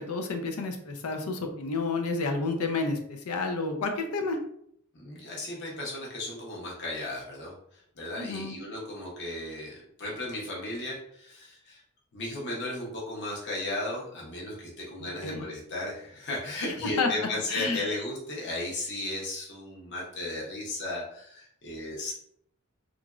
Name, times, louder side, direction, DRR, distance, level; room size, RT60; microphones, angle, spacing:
voice 1, 0.0-4.4 8.2-8.6 15.2-15.4 17.0-17.1 17.5-17.9, left 3 dB, 90° left, 5 dB, 0.5 m, -30 dB
voice 2, 4.9-7.5 8.0-11.8 12.1-22.1, left 1 dB, 55° left, -3 dB, 0.8 m, -35 dB
3.0 x 2.5 x 2.3 m, 0.68 s
head